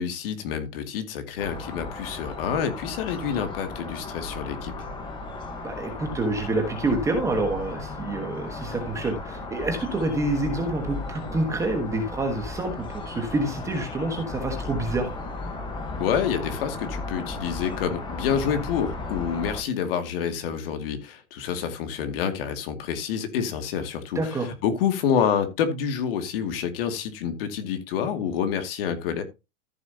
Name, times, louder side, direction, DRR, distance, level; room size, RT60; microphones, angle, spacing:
voice 1, 0.0-4.7 16.0-29.2, left 8 dB, 50° left, 2.3 m, -28 dB
sound 1, 1.4-19.6, left 3 dB, 15° left, 1.2 m, -35 dB
voice 2, 5.6-15.1 24.1-24.5, right 2 dB, 10° right, 1.3 m, -27 dB
14.0 x 7.3 x 2.8 m
supercardioid pair, 180°, 36 cm